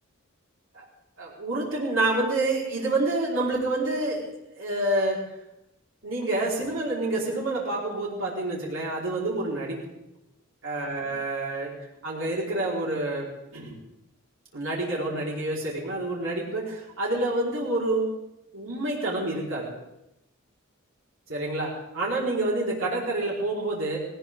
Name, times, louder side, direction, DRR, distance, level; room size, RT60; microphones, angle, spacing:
voice 1, 1.2-4.3 4.5-5.2 6.0-9.8 10.6-11.7 12.0-13.2 13.5-13.8 14.5-18.1 18.5-19.7 21.3-24.0, right 2 dB, 70° right, -4 dB, 4.9 m, -28 dB
19.5 x 19.0 x 3.9 m, 0.88 s
head